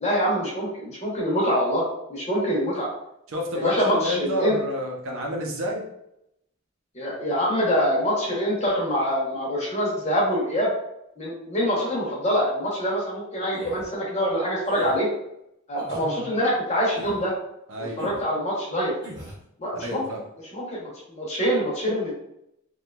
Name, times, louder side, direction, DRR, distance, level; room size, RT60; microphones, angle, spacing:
voice 1, 0.0-1.8 2.1-2.9 3.5-4.6 6.9-10.7 11.2-15.1 15.7-17.3 18.0-18.9 19.6-20.0 20.5-22.1, equal, 30° left, -4 dB, 0.8 m, -25 dB
voice 2, 3.3-5.8 16.0-16.3 17.7-18.1 19.8-20.2, equal, 70° right, 0 dB, 0.6 m, -29 dB
sound 1, 13.5-13.9 14.6-15.0 15.8-16.1 16.9-17.3 18.0-18.2 19.0-19.4, right 2 dB, 20° right, 0.8 m, -41 dB
2.8 x 2.3 x 2.2 m, 0.80 s
head